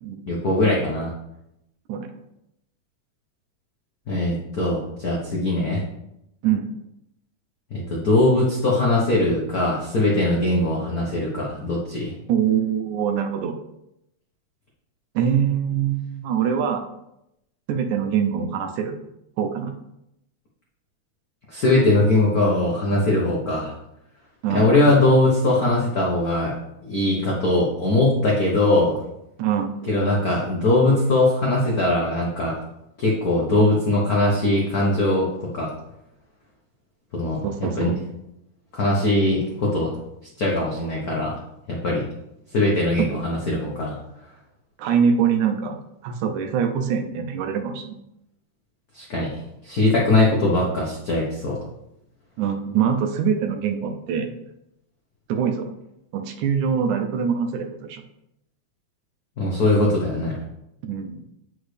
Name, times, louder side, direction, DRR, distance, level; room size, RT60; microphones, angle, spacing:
voice 1, 0.3-1.1 4.1-5.8 7.7-12.1 21.5-23.7 24.5-26.5 26.8-29.0 29.9-32.6 33.0-35.3 35.5-35.7 37.1-37.9 38.7-39.9 40.4-41.3 41.7-42.0 42.5-44.0 48.9-51.6 59.4-60.3, left 2 dB, 85° left, -4 dB, 0.8 m, -21 dB
voice 2, 12.3-13.6 15.2-16.8 17.7-19.0 19.4-19.7 24.4-24.7 29.4-29.8 37.4-37.9 43.0-43.2 44.8-45.8 46.0-48.0 52.4-54.3 55.3-55.7 56.1-58.0 60.8-61.2, right 7 dB, 90° right, 5 dB, 2.1 m, -23 dB
8.1 x 5.4 x 3.3 m, 0.84 s
omnidirectional pair, 3.4 m